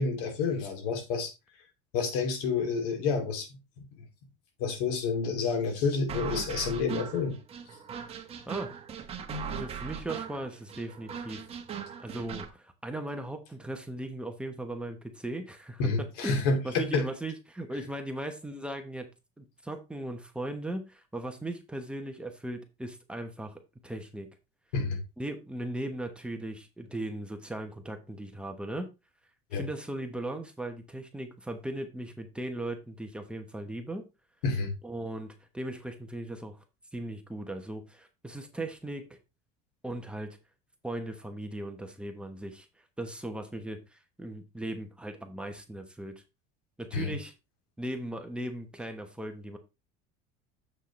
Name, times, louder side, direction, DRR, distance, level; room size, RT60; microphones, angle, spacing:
voice 1, 0.0-1.3 1.9-3.6 4.6-7.4 15.8-17.1 24.7-25.0 29.5-29.7 34.4-34.7 46.9-47.1, left 4 dB, 85° left, 2.7 m, -29 dB
sound 1, 6.1-12.5, right 6 dB, 30° right, 1.4 m, -39 dB
voice 2, 9.5-11.4 12.0-19.1 19.4-24.3 25.2-28.9 29.5-34.1 34.8-36.6 36.9-39.2 39.8-40.4 40.8-42.7 43.0-46.1 46.8-47.3 47.8-49.6, right 1 dB, 5° right, 1.0 m, -38 dB
7.6 x 6.4 x 3.2 m
cardioid pair, 135°, 20 cm